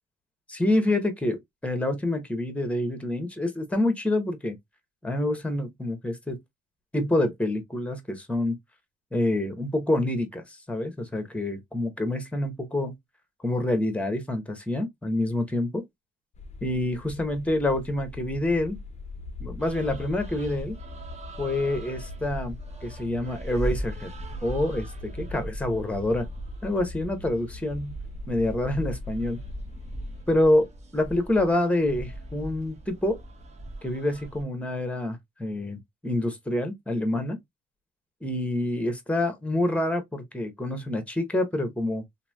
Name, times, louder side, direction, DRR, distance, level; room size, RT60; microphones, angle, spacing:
voice 1, 0.5-4.6 5.0-6.4 6.9-8.6 9.1-12.9 13.4-15.8 16.6-18.8 19.4-20.8 21.4-22.6 22.8-24.1 24.4-26.3 26.6-28.0 28.3-29.4 30.3-30.7 30.9-33.2 33.8-37.4 38.2-42.0, left 1 dB, 5° left, 0.9 m, -27 dB
sound 1, 16.3-30.2, left 3 dB, 35° left, 0.5 m, -42 dB
sound 2, 19.6-34.4, right 1 dB, 35° right, 0.8 m, -39 dB
3.0 x 2.6 x 2.2 m
cardioid pair, 90°, 20 cm